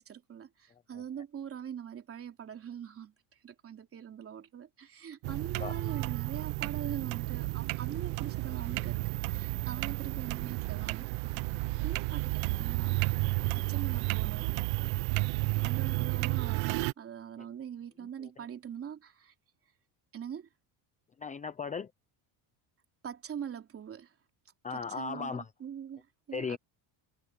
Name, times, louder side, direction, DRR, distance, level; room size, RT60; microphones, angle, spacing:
voice 1, 0.0-3.1 3.4-9.0 9.3-11.2 11.8-13.0 13.4-14.5 15.2-19.3 20.1-20.5 23.0-24.1 24.7-26.6, right 8 dB, 30° right, 3.2 m, -43 dB
sound 1, 5.2-16.9, right 23 dB, 70° right, 1.0 m, -32 dB
voice 2, 21.2-21.9 24.6-25.4 26.3-26.6, left 5 dB, 15° left, 0.7 m, -36 dB
cardioid pair, 155°, 46 cm